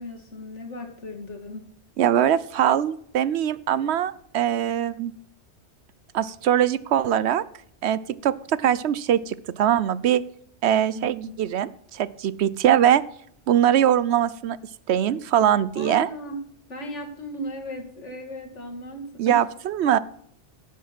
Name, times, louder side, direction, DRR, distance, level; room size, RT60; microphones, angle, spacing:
voice 1, 0.0-1.7 10.9-11.4 15.8-16.4 16.7-19.4, equal, 80° left, 3 dB, 2.4 m, -36 dB
voice 2, 2.0-5.1 6.1-7.4 7.8-10.2 10.6-13.0 13.5-14.6 14.9-16.1 19.2-20.0, right 10 dB, 70° right, 18 dB, 0.8 m, -22 dB
11.0 x 7.5 x 5.9 m, 0.66 s
omnidirectional pair, 1.2 m